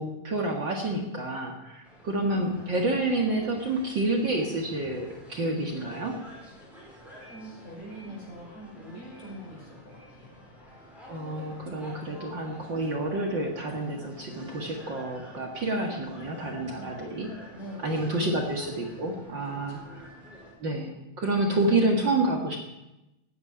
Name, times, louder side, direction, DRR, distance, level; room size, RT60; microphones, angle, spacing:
voice 1, 0.0-6.2 11.1-17.3 17.8-20.1 20.6-22.6, right 2 dB, 45° right, 2 dB, 2.0 m, -29 dB
sound 1, 1.8-20.5, equal, ahead, 5.5 m, -49 dB
voice 2, 7.0-10.3 17.5-18.3 19.4-19.9, equal, 65° left, -2 dB, 7.0 m, -44 dB
15.5 x 9.4 x 10.0 m, 0.97 s
omnidirectional pair, 3.4 m